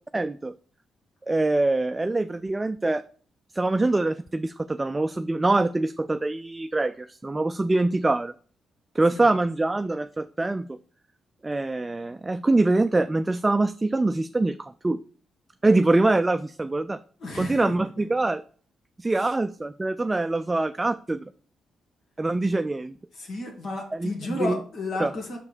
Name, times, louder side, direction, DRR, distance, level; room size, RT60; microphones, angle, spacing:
voice 1, 0.1-0.5 1.3-3.0 3.5-8.3 8.9-10.7 11.4-15.0 15.6-17.0 17.4-18.4 19.0-21.3 22.2-23.0 23.9-24.6 25.0-25.1, right 2 dB, 25° right, 10 dB, 0.3 m, -24 dB
voice 2, 17.2-17.7 23.2-25.4, left 2 dB, 70° left, 1 dB, 1.9 m, -32 dB
5.3 x 4.8 x 4.2 m, 0.43 s
supercardioid pair, 50°, 0 cm